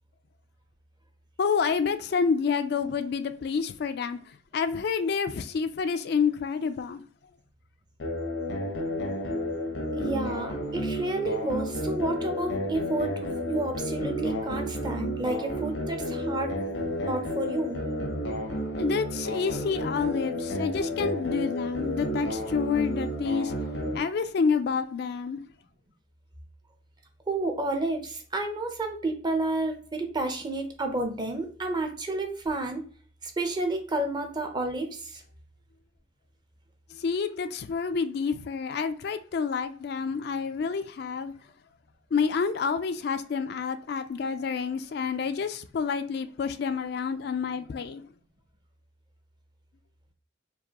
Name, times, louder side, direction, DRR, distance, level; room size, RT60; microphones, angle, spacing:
voice 1, 1.4-4.2 4.5-7.0 18.8-23.5 23.9-25.4 36.9-41.3 42.1-48.0, left 5 dB, 60° left, 0.3 m, -28 dB
sound 1, 8.0-24.0, equal, 85° left, 0.8 m, -31 dB
voice 2, 10.0-16.5 17.0-17.8 27.3-32.8 33.2-35.2, right 2 dB, 25° right, 0.7 m, -30 dB
4.6 x 2.6 x 2.9 m
head